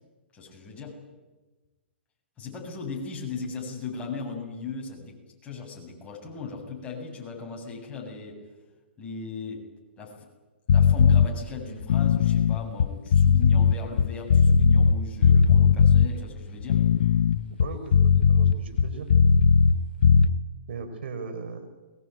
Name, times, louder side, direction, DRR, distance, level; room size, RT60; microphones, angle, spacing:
voice 1, 0.3-1.0 2.4-5.2 5.4-8.4 9.0-9.7 10.0-10.3 10.7-16.8, left 4 dB, 20° left, -1 dB, 7.8 m, -37 dB
sound 1, 10.7-11.3 11.8-15.0 15.2-16.1 16.6-19.8 20.0-20.3, left 6 dB, 60° left, 1.0 m, -18 dB
voice 2, 17.6-19.1 20.7-21.7, right 4 dB, 65° right, 7 dB, 5.0 m, -37 dB
22.5 x 21.5 x 9.3 m, 1.2 s
hypercardioid pair, 135°, 6 cm